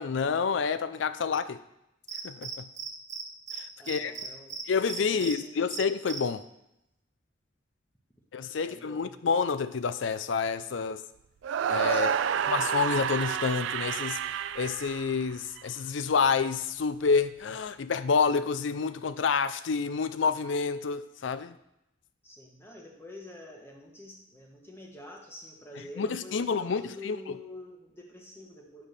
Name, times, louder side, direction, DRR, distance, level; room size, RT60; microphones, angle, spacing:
voice 1, 0.0-1.6 2.2-2.6 3.6-4.1 4.7-6.4 8.3-11.0 11.7-12.2 12.5-14.2 14.5-21.6 26.0-27.4, left 5 dB, 70° left, 0.4 m, -28 dB
Cricket, 2.1-3.2 3.5-3.6 3.9-5.3 5.7-6.2, right 7 dB, 40° right, 0.8 m, -37 dB
voice 2, 3.8-4.6 5.0-5.8 8.6-9.3 11.9-12.5 22.2-28.9, left 2 dB, 10° left, 1.2 m, -47 dB
sound 1, 11.4-15.6, right 8 dB, 70° right, 0.3 m, -29 dB
9.2 x 3.6 x 6.6 m
head